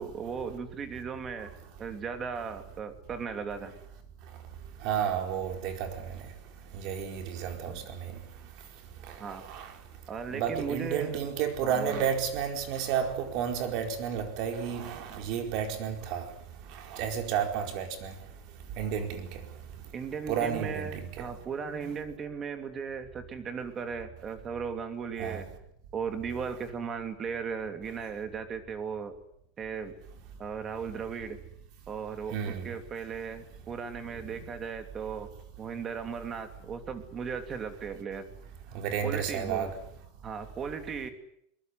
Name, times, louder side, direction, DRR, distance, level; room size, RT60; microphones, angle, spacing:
voice 1, 0.0-1.5 1.8-3.7 7.7-7.8 9.2-9.4 10.1-11.2 11.6-12.0 19.9-25.5 25.9-29.2 29.6-30.0 30.4-31.4 31.9-35.3 35.6-38.2 39.0-39.7 40.2-41.1, right 6 dB, 20° right, 2.8 m, -37 dB
voice 2, 4.8-5.9 6.7-8.1 9.3-9.7 10.3-16.3 16.9-18.1 18.8-19.4 20.3-21.1 21.8-21.9 25.2-25.4 32.3-32.7 38.7-39.7, right 8 dB, 45° right, 4.6 m, -31 dB
22.0 x 21.5 x 9.6 m
supercardioid pair, 165°, 0 cm